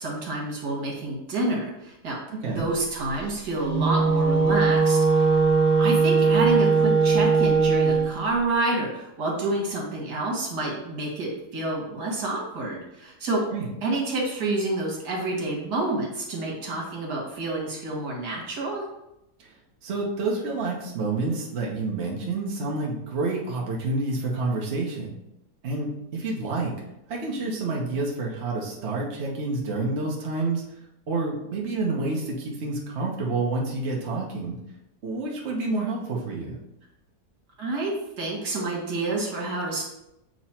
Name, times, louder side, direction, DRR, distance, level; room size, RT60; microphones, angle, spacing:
voice 1, 0.0-2.2 2.4-5.4 5.8-13.4 13.8-18.8 37.6-39.8, right 2 dB, 70° right, -2 dB, 2.1 m, -28 dB
voice 2, 2.3-2.6 13.5-13.7 19.4-19.5 19.8-25.1 25.6-26.7 27.1-30.6 31.1-34.6 35.0-36.6, right 3 dB, 45° right, -3 dB, 1.2 m, -28 dB
Wind instrument woodwind instrument, 3.6-8.1, right 4 dB, 50° left, 0.5 m, -20 dB
7.8 x 3.0 x 4.3 m, 0.86 s
omnidirectional pair, 1.8 m